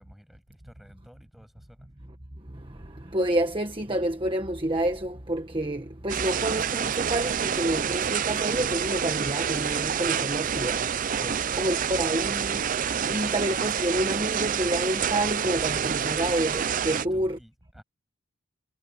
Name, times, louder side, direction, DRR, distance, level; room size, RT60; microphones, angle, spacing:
voice 1, 0.0-1.9 11.2-12.2 16.9-17.8, equal, ahead, 7.2 m, -51 dB
voice 2, 3.1-10.8 11.6-12.6 13.1-17.4, right 1 dB, 25° right, 1.5 m, -28 dB
sound 1, 6.1-17.1, right 7 dB, 40° right, 0.5 m, -28 dB
head